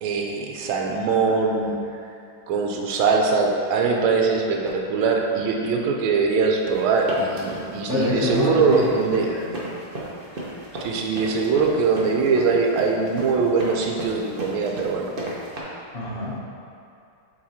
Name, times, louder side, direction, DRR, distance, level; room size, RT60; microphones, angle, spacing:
voice 1, 0.0-1.8 2.5-9.3 10.8-15.1, right 4 dB, 85° right, 1 dB, 1.5 m, -22 dB
sound 1, 6.7-15.6, right 1 dB, 40° right, 0.8 m, -34 dB
voice 2, 7.9-9.5 10.3-10.5 15.9-16.4, left 2 dB, 35° left, -7 dB, 1.1 m, -26 dB
7.7 x 3.8 x 4.2 m, 2.6 s
omnidirectional pair, 2.3 m